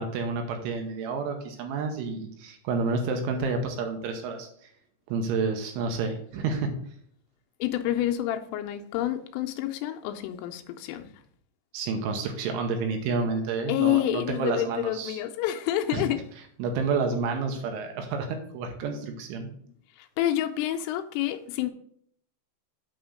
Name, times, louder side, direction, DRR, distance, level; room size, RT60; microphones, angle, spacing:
voice 1, 0.0-4.5 5.1-6.7 11.7-15.2 15.9-16.0 16.6-19.5, right 4 dB, 80° right, 3.1 m, -29 dB
voice 2, 7.6-11.1 13.7-16.2 20.0-21.7, left 12 dB, 85° left, 3.1 m, -28 dB
8.7 x 3.4 x 6.3 m
omnidirectional pair, 5.9 m